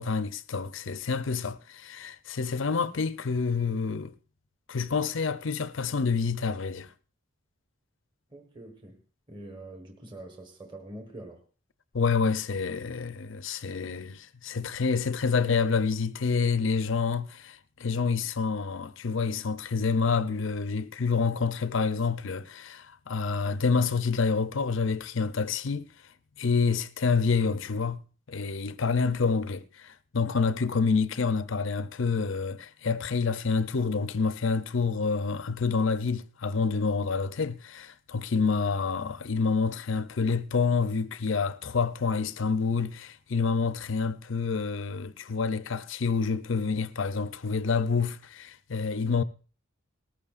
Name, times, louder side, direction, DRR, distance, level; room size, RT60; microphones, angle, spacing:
voice 1, 0.0-4.1 4.7-6.9 11.9-25.9 26.4-28.0 28.3-49.2, left 5 dB, 65° left, 0.6 m, -28 dB
voice 2, 8.3-9.0 9.3-11.4, right 1 dB, 20° right, 1.4 m, -44 dB
19.0 x 14.0 x 2.5 m
head